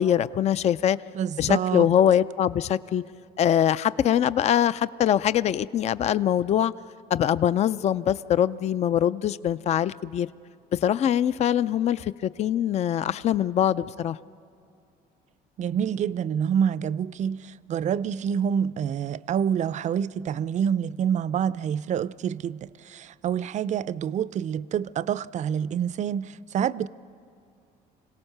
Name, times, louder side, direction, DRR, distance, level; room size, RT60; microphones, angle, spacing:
voice 1, 0.0-1.0 1.4-3.0 3.4-6.7 7.1-10.3 10.7-14.2, left 10 dB, 40° left, 0.4 m, -23 dB
voice 2, 1.1-1.9 15.6-26.9, right 8 dB, 45° right, 0.5 m, -27 dB
25.5 x 17.5 x 6.6 m
cardioid pair, 110°, 17 cm